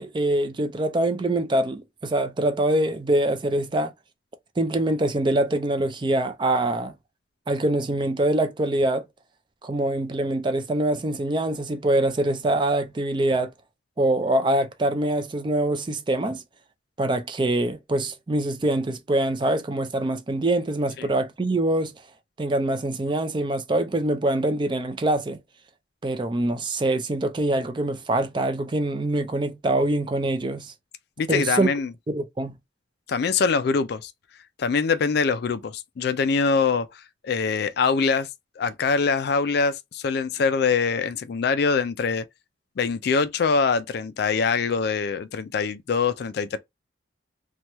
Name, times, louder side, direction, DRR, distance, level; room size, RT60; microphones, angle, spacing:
voice 1, 0.0-3.9 4.6-6.9 7.5-9.0 9.6-13.5 14.0-16.4 17.0-21.9 22.4-25.4 26.0-30.7 31.3-31.7 32.1-32.6, right 1 dB, 25° right, 0.4 m, -24 dB
voice 2, 31.2-31.9 33.1-34.1 34.6-38.3 38.6-42.2 42.8-46.6, left 5 dB, 55° left, 0.3 m, -24 dB
2.9 x 2.2 x 2.9 m
head